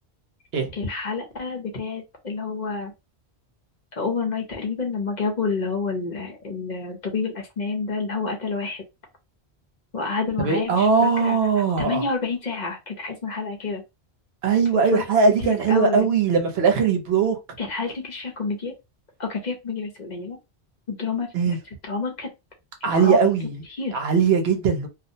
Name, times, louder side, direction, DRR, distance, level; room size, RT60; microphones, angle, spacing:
voice 1, 0.7-2.9 3.9-8.8 9.9-11.4 11.8-13.8 14.9-15.0 15.4-16.1 17.6-18.7 19.2-20.4 20.9-22.3 22.8-23.3 23.7-24.0, left 4 dB, 45° left, 0.9 m, -29 dB
voice 2, 10.4-12.0 14.4-17.4 21.3-21.6 22.8-23.6 23.9-24.9, right 5 dB, 75° right, 0.9 m, -20 dB
2.5 x 2.0 x 2.7 m
omnidirectional pair, 1.1 m